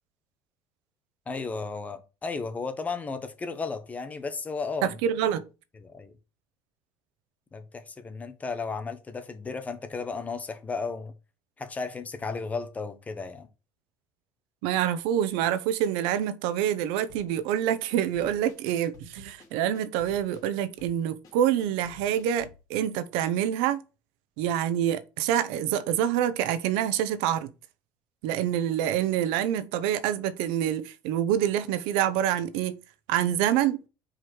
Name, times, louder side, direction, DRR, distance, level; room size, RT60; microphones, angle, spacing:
voice 1, 1.3-5.0 5.8-6.1 7.5-11.1 11.6-13.5, left 4 dB, 15° left, 1.0 m, -34 dB
voice 2, 4.8-5.5 14.6-23.8 24.4-27.5 28.2-32.8 33.1-33.8, right 10 dB, 85° right, 0.9 m, -26 dB
sound 1, 17.1-22.6, left 4 dB, 45° left, 2.9 m, -52 dB
5.1 x 4.8 x 6.1 m
cardioid pair, 150°, 8 cm